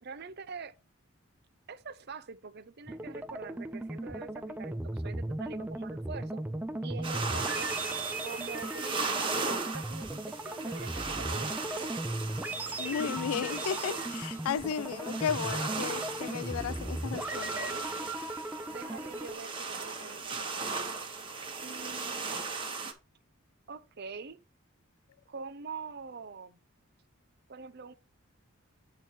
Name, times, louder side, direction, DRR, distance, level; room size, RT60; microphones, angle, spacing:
voice 1, 0.0-0.7 1.7-6.4 6.8-7.7 8.2-12.2 17.3-17.9 18.7-20.9 21.6-22.3 23.7-24.4 25.3-26.6 27.5-27.9, right 4 dB, 50° right, 0.6 m, -45 dB
sound 1, 2.9-19.3, right 1 dB, 10° right, 0.4 m, -37 dB
sound 2, 7.0-22.9, right 4 dB, 25° right, 1.3 m, -37 dB
voice 2, 12.8-17.5, left 8 dB, 85° left, 0.3 m, -34 dB
8.8 x 3.6 x 5.8 m
head